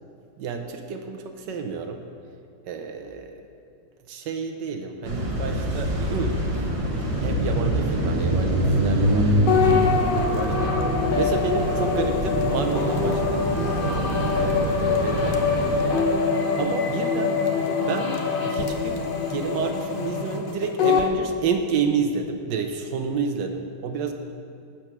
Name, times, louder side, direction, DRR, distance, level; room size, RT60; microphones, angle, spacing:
voice 1, 0.4-2.0 2.6-3.3 4.1-6.7 7.2-10.8 11.2-14.1 14.4-16.0 16.6-17.4 17.9-24.1, right 5 dB, 65° right, 6 dB, 1.3 m, -30 dB
sound 1, 5.0-15.8, right 1 dB, 25° right, 0.7 m, -25 dB
sound 2, 9.5-21.1, left 5 dB, 65° left, 0.5 m, -24 dB
8.9 x 8.0 x 6.0 m, 2.4 s
omnidirectional pair, 2.2 m